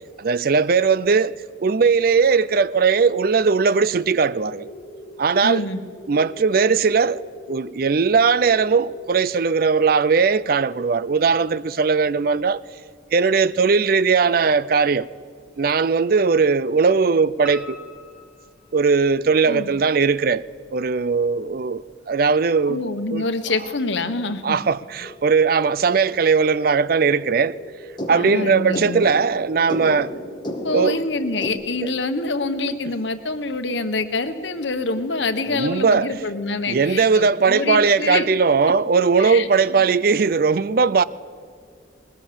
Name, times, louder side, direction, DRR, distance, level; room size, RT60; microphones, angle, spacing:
voice 1, 0.2-4.7 5.2-5.7 6.1-7.2 7.5-12.6 13.1-15.1 15.6-17.8 18.7-20.4 20.7-22.8 23.1-23.2 24.4-27.6 28.1-30.1 30.7-31.0 31.8-31.9 35.5-36.1 36.7-41.0, right 5 dB, 50° right, 0.5 m, -19 dB
sound 1, 4.0-9.0, equal, 45° left, 7.0 m, -42 dB
voice 2, 5.4-5.8 19.5-19.7 22.7-24.6 28.1-29.1 30.6-38.3 38.7-38.8 39.2-39.5, left 3 dB, 75° left, 1.4 m, -26 dB
Piano, 17.4-19.4 19.8-20.6 21.0-21.1 21.5-21.6 21.9-22.0, left 1 dB, 5° right, 1.8 m, -43 dB
sound 2, 25.0-31.5, left 1 dB, 25° left, 2.3 m, -34 dB
20.5 x 20.0 x 7.1 m
head